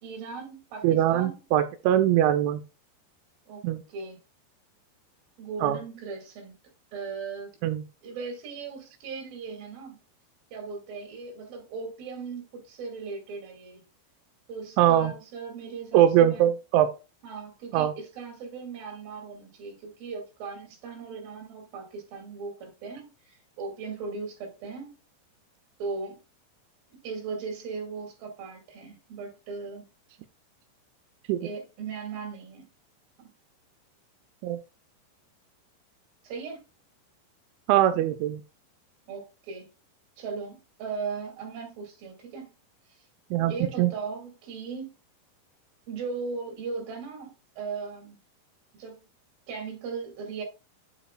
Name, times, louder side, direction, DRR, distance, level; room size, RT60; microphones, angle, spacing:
voice 1, 0.0-1.4 3.5-4.2 5.4-6.5 6.9-7.5 8.0-10.0 10.5-13.8 14.5-16.5 17.2-25.0 25.8-26.2 27.0-29.9 31.4-32.7 33.2-33.3 36.2-36.6 39.1-39.7 40.2-42.5 42.9-43.0 43.5-44.9 45.9-48.2 48.7-49.0 49.5-50.4, right 5 dB, 55° right, 3.7 m, -38 dB
voice 2, 0.8-2.6 3.6-3.8 5.6-5.8 7.6-7.8 14.8-15.1 15.9-16.9 17.7-17.9 31.3-31.4 34.4-34.6 37.7-38.4 43.3-43.9, right 11 dB, 85° right, 3.0 m, -22 dB
8.2 x 7.1 x 2.3 m
omnidirectional pair, 5.3 m